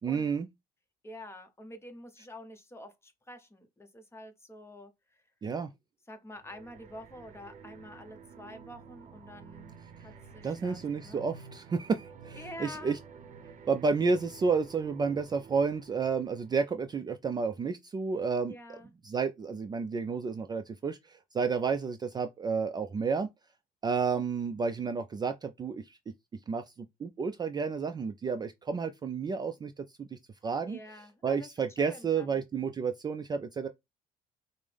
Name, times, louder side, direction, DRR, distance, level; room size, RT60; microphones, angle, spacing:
voice 1, 0.0-0.5 5.4-5.7 10.4-13.0 13.7-18.5 19.0-23.3 23.8-26.0 26.5-26.6 27.0-30.8 31.2-33.7, right 5 dB, 25° right, 0.3 m, -31 dB
voice 2, 1.0-5.2 6.1-9.8 10.0-11.3 12.3-13.0 18.5-18.9 30.7-31.5 31.8-32.4, left 1 dB, 15° left, 0.8 m, -47 dB
sound 1, 6.4-16.9, right 6 dB, 45° right, 0.7 m, -51 dB
5.2 x 2.0 x 3.3 m
cardioid pair, 110°, 17 cm